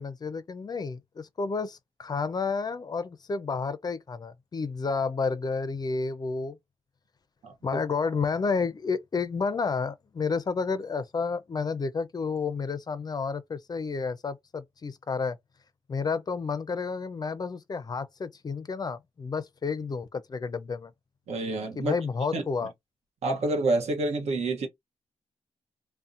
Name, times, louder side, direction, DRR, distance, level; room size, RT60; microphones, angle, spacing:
voice 1, 0.0-6.6 7.6-15.4 15.9-20.9 21.8-22.7, left 4 dB, 35° left, 0.4 m, -31 dB
voice 2, 7.4-7.8 21.3-21.9 22.3-22.4 23.2-24.7, right 2 dB, 75° right, 0.9 m, -28 dB
2.6 x 2.1 x 2.4 m
cardioid pair, 70°, 11 cm